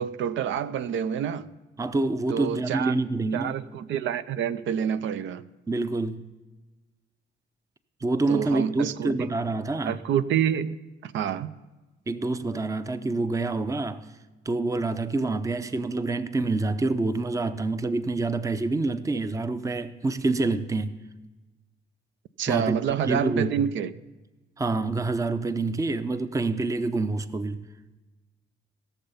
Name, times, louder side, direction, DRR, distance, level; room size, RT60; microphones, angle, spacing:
voice 1, 0.0-1.5 2.3-3.0 3.3-5.4 8.3-9.3 9.8-10.8 11.0-11.5 22.4-23.9, right 9 dB, 70° right, 0.5 m, -27 dB
voice 2, 1.8-3.6 5.7-6.3 8.0-10.0 12.1-14.1 14.5-21.0 22.5-22.8 23.0-23.7 24.6-27.7, right 3 dB, 15° right, 0.5 m, -27 dB
16.0 x 7.0 x 5.6 m
cardioid pair, 90°, 20 cm